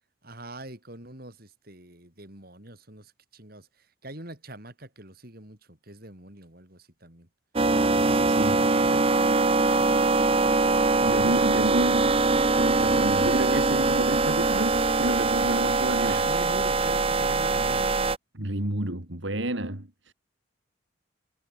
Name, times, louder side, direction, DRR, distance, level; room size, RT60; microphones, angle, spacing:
voice 1, 0.2-7.3 7.9-10.4 16.0-17.9, right 1 dB, 50° right, 5.5 m, -43 dB
sound 1, 7.6-18.2, right 3 dB, 30° right, 0.9 m, -22 dB
voice 2, 11.0-12.1 12.6-16.2 18.3-20.1, right 1 dB, 65° right, 3.0 m, -30 dB
head